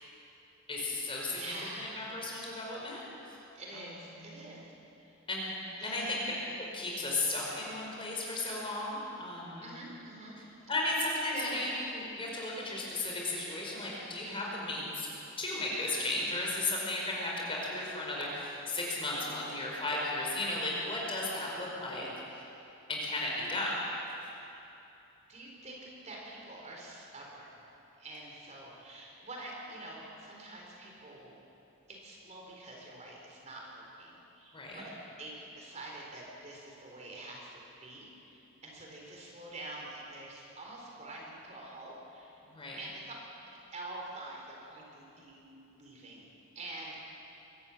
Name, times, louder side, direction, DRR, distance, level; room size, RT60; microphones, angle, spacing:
voice 1, 0.7-3.4 3.7-3.8 4.1-4.5 5.3-5.5 5.8-6.2 6.6-9.7 10.7-15.1 15.4-22.4 22.9-23.8 34.5-34.8 42.5-42.8, left 2 dB, 25° left, -3 dB, 5.0 m, -35 dB
voice 2, 1.3-2.0 3.5-4.7 5.0-5.2 5.8-6.3 9.6-10.7 11.3-11.7 25.3-25.8 26.0-27.6 28.0-31.3 31.9-42.4 42.8-43.1 43.7-46.3 46.5-47.3, right 2 dB, 35° right, -2 dB, 4.0 m, -46 dB
23.5 x 14.5 x 8.8 m, 2.9 s
head